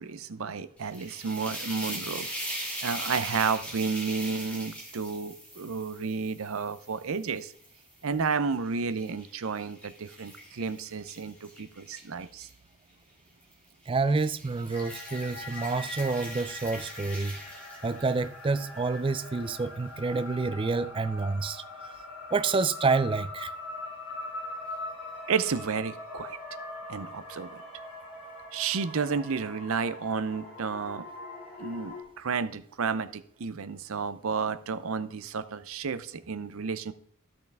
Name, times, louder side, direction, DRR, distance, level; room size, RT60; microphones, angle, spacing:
voice 1, 0.0-2.3 2.8-7.5 8.0-12.5 25.3-26.4 26.9-27.6 28.5-31.0 31.6-36.9, right 5 dB, 65° right, 0.6 m, -31 dB
sound 1, 0.8-8.0 8.5-12.5 13.4-13.7 14.1-18.2, equal, 5° left, 2.4 m, -41 dB
voice 2, 13.9-17.4 17.8-21.9 22.3-23.5, right 3 dB, 25° right, 0.3 m, -28 dB
sound 2, 14.7-32.0, left 2 dB, 50° left, 3.2 m, -42 dB
13.0 x 6.0 x 3.5 m
head